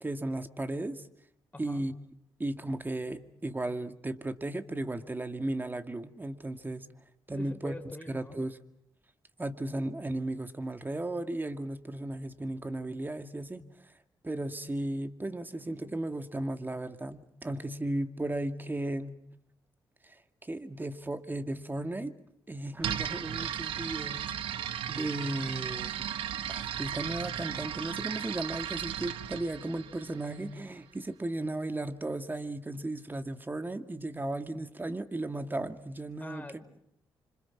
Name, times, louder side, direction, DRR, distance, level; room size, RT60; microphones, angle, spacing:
voice 1, 0.0-1.0 1.6-1.9 2.4-6.9 7.3-7.8 8.1-8.6 9.4-13.6 14.2-19.2 20.0-20.1 20.4-22.2 22.5-24.6 24.9-26.0 26.5-36.5, right 1 dB, 20° right, 9 dB, 2.0 m, -35 dB
voice 2, 1.5-1.8 7.4-8.4 36.2-36.8, left 2 dB, 15° left, 6 dB, 3.9 m, -45 dB
sound 1, 22.8-30.6, right 10 dB, 80° right, 1.0 m, -36 dB
26.5 x 26.0 x 6.0 m, 0.75 s
supercardioid pair, 55°, 9 cm